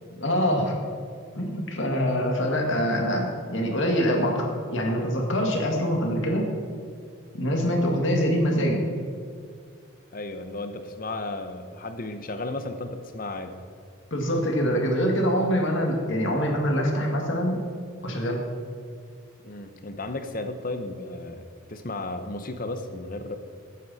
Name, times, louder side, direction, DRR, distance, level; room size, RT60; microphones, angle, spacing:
voice 1, 0.2-0.7 1.4-6.5 7.3-8.8 14.1-17.6 18.0-18.4, equal, 60° left, 1 dB, 2.0 m, -24 dB
voice 2, 10.1-13.6 19.4-23.4, left 2 dB, 40° left, 8 dB, 0.8 m, -34 dB
14.5 x 9.5 x 4.2 m, 2.2 s
head